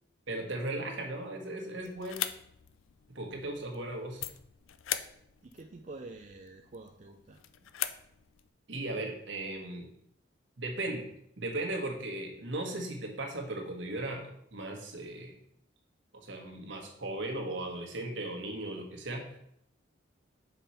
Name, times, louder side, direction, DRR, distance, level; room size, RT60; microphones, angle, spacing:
voice 1, 0.3-2.2 3.1-4.2 8.7-9.9 10.6-11.0 11.4-15.4 16.2-19.4, right 2 dB, 70° right, 2 dB, 1.4 m, -37 dB
sound 1, 1.8-8.5, left 11 dB, 90° left, 0.4 m, -41 dB
voice 2, 5.4-7.7, right 2 dB, 35° right, 2 dB, 0.4 m, -48 dB
5.9 x 5.3 x 4.3 m, 0.73 s
head